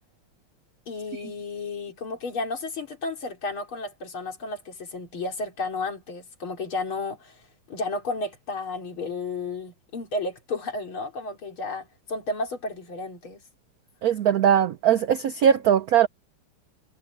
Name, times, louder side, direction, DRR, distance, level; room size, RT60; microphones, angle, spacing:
voice 1, 0.9-7.4 7.7-13.4, left 3 dB, 70° left, 4.3 m, -32 dB
voice 2, 14.0-16.1, right 9 dB, 75° right, 0.8 m, -20 dB
omnidirectional pair, 2.3 m